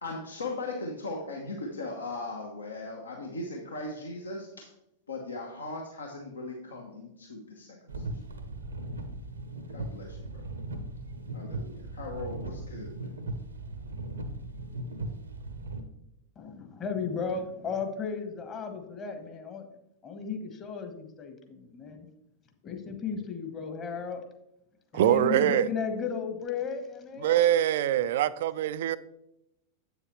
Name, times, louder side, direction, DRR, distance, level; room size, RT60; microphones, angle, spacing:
voice 1, 0.0-4.7 5.1-8.0 9.7-10.4 11.3-13.1, left 2 dB, 75° left, 1.0 m, -38 dB
sound 1, 7.9-15.8, right 2 dB, 75° right, 0.8 m, -38 dB
voice 2, 16.4-19.7 20.0-22.0 22.6-24.2 24.9-27.5, left 5 dB, 25° left, 1.1 m, -34 dB
voice 3, 24.9-25.7 27.2-29.0, right 11 dB, 55° right, 0.3 m, -24 dB
8.0 x 7.0 x 3.0 m
figure-of-eight pair, 90°, 0 cm